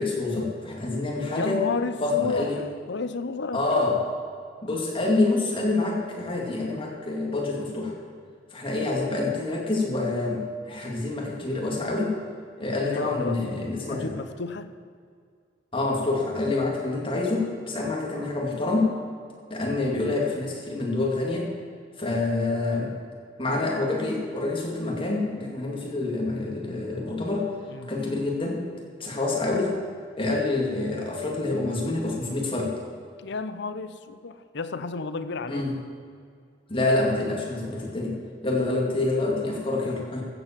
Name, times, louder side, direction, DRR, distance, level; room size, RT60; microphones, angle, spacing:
voice 1, 0.0-1.6 2.0-2.6 3.5-3.9 4.6-7.9 8.5-12.2 12.6-14.1 15.7-18.9 19.5-21.5 22.0-22.9 23.4-27.5 27.9-28.6 29.0-29.7 30.2-32.7 35.5-35.7 36.7-38.1 38.4-40.2, left 2 dB, 30° left, -1 dB, 2.4 m, -27 dB
voice 2, 1.3-3.6 3.9-4.0 12.8-13.4 13.8-14.7 23.5-23.6 27.7-27.9 33.2-35.7, left 3 dB, 65° left, 11 dB, 0.7 m, -32 dB
15.0 x 7.8 x 7.3 m, 2.2 s
head